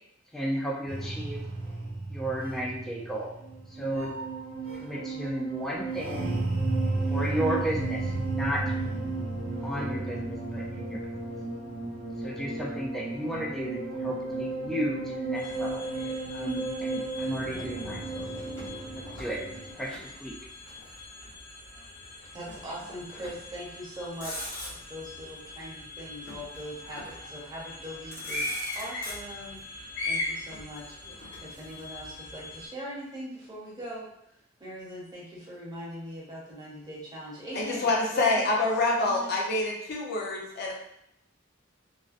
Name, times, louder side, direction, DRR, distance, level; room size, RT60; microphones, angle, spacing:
voice 1, 0.3-1.5 2.1-3.4 3.7-4.2 4.8-6.2 7.1-8.7 9.6-11.1 12.2-15.8 16.3-18.3 19.0-19.5 19.8-20.4, equal, ahead, -3 dB, 0.3 m, -33 dB
sound 1, 0.9-19.7, right 2 dB, 75° right, 0.6 m, -33 dB
sound 2, 15.3-32.7, left 2 dB, 70° left, 1.1 m, -40 dB
Motor vehicle (road), 18.6-20.1 20.4-21.5 22.5-22.7 23.1-23.6 24.0-25.1 26.3-27.3 27.8-27.9 28.1-29.6 30.5-32.1, left 1 dB, 85° left, 0.9 m, -44 dB
voice 2, 22.3-30.9 31.4-37.9 38.1-38.5 38.8-39.3, equal, 20° right, -6 dB, 0.7 m, -41 dB
voice 3, 37.5-40.7, left 2 dB, 55° left, -2 dB, 0.5 m, -26 dB
2.4 x 2.1 x 2.4 m, 0.76 s
head